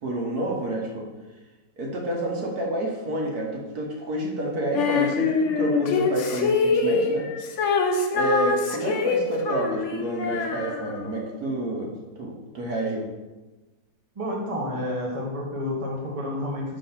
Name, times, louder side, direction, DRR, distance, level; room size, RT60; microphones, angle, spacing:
voice 1, 0.0-1.1 1.8-7.3 8.1-13.1, right 1 dB, 65° right, -1 dB, 1.5 m, -29 dB
Female singing, 4.7-11.2, left 4 dB, 60° left, 0.8 m, -24 dB
voice 2, 14.1-16.8, left 1 dB, 25° right, -2 dB, 1.0 m, -30 dB
5.2 x 3.8 x 5.6 m, 1.1 s
omnidirectional pair, 1.8 m